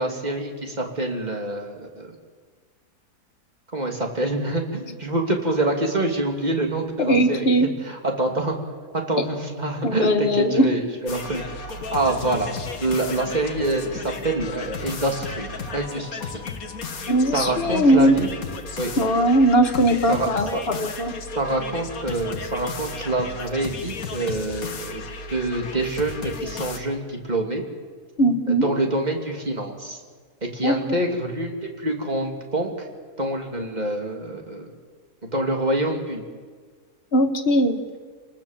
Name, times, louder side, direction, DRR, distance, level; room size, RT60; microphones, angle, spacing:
voice 1, 0.0-2.1 3.7-7.5 7.9-8.6 8.9-11.4 11.9-12.5 12.8-16.3 17.3-18.3 18.8-18.9 20.1-20.6 21.3-25.0 25.3-27.6 28.6-30.0 30.4-32.7 33.2-34.7 35.3-36.2, right 2 dB, 25° right, 2 dB, 2.9 m, -26 dB
voice 2, 7.1-7.7 9.8-10.7 17.1-18.2 19.0-21.1 28.2-28.7 30.6-30.8 37.1-37.8, right 1 dB, 40° left, 6 dB, 1.9 m, -19 dB
sound 1, 11.1-26.8, left 4 dB, 60° left, 1.9 m, -34 dB
28.5 x 19.5 x 7.5 m, 1.5 s
omnidirectional pair, 1.7 m